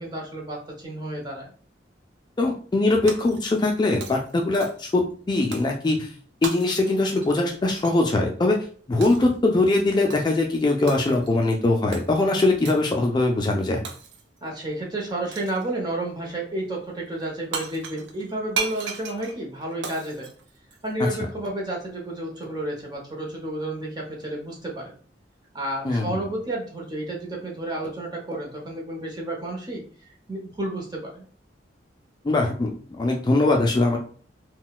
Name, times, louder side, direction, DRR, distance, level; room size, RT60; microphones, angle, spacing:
voice 1, 0.0-1.5 14.4-20.3 20.8-25.0 25.5-31.3, right 1 dB, 25° right, -1 dB, 0.9 m, -31 dB
voice 2, 2.4-5.0 5.3-6.1 6.4-8.6 8.9-13.8 21.0-21.1 25.8-26.2 32.2-32.7 33.0-34.0, left 2 dB, 25° left, 1 dB, 0.4 m, -21 dB
Shatter, 3.1-3.7 4.0-5.0 5.5-5.8 6.4-8.0 9.0-9.3 10.1-10.4 10.9-11.4 11.9-12.1 12.6-12.9 13.8-14.4 15.3-15.7 17.2-17.3 17.5-21.1, right 5 dB, 75° right, 0.5 m, -36 dB
3.8 x 2.2 x 2.3 m, 0.43 s
head